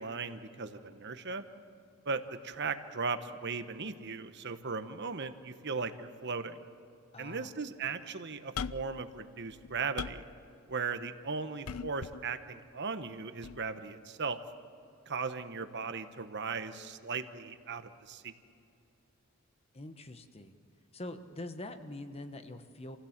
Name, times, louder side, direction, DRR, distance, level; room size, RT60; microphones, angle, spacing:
voice 1, 0.0-1.4 2.0-6.6 7.2-10.2 10.7-14.4 15.1-18.3, right 4 dB, 55° right, 9 dB, 1.1 m, -37 dB
voice 2, 7.1-7.5 19.7-20.6 20.9-23.0, left 1 dB, 30° left, 8 dB, 1.1 m, -44 dB
sound 1, 8.6-9.0 9.5-10.3 11.7-12.2 13.4-13.6, left 6 dB, 75° left, 0.5 m, -39 dB
28.0 x 16.0 x 7.3 m, 2.7 s
head